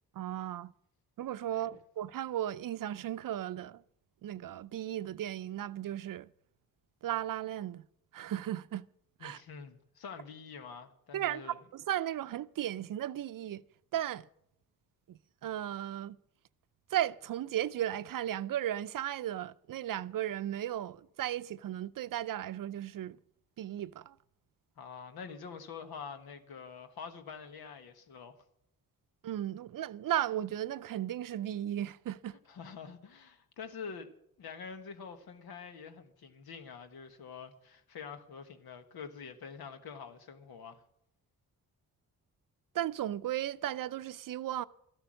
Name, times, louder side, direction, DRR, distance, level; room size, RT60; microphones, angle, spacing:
voice 1, 0.1-0.7 1.2-3.8 4.2-6.3 7.0-7.9 8.1-8.9 9.2-9.4 11.1-13.6 13.9-14.3 15.1-16.2 16.9-23.2 23.6-24.2 29.2-32.4 42.7-44.6, right 12 dB, 65° right, 0.5 m, -35 dB
voice 2, 9.2-11.6 24.8-28.4 32.5-34.1 34.4-40.8, left 6 dB, 85° left, 1.5 m, -46 dB
13.5 x 11.5 x 6.4 m
cardioid pair, 80°, 36 cm